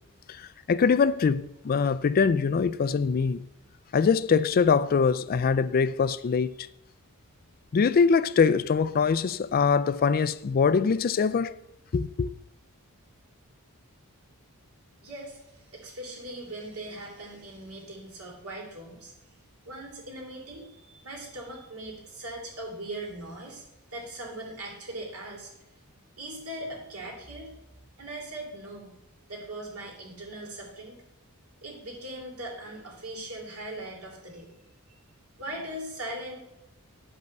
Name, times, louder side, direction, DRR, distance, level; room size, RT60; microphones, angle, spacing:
voice 1, 0.3-3.5 3.9-6.5 7.7-11.5 11.9-12.4, left 5 dB, 40° left, 0.3 m, -23 dB
voice 2, 15.0-19.1 19.6-23.6 23.9-25.5 26.2-27.5 28.0-28.9 29.3-31.0 31.6-34.5 34.9-35.0 35.3-36.4, right 1 dB, 75° right, 3.2 m, -40 dB
10.5 x 5.5 x 6.6 m
head